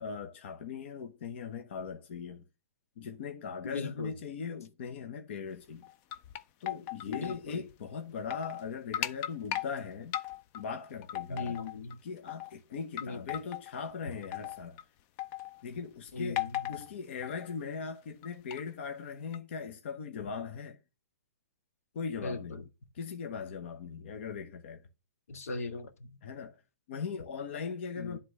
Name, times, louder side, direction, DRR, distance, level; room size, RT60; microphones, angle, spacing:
voice 1, 0.0-2.4 3.0-5.8 6.6-10.2 10.5-11.6 12.0-14.8 15.6-16.4 16.7-20.8 21.9-22.7 22.9-24.8 26.2-26.6 26.9-28.2, left 5 dB, 50° left, 1.1 m, -39 dB
voice 2, 3.6-4.1 7.1-7.6 11.3-12.0 13.0-13.4 15.7-15.8 16.1-16.6 22.2-22.4 25.3-26.1 28.0-28.2, left 3 dB, 90° left, 1.7 m, -38 dB
sound 1, 5.8-7.4 7.7-7.8 8.2-8.6 8.9-9.7 10.1-10.6 11.0-11.9 12.3-12.5 13.0-13.7 14.2-14.8 15.2-15.6 16.4-16.9 17.2-17.5 18.2-18.6 19.3-19.4, left 13 dB, 25° left, 0.5 m, -37 dB
10.5 x 3.8 x 6.6 m
hypercardioid pair, 165°, 8 cm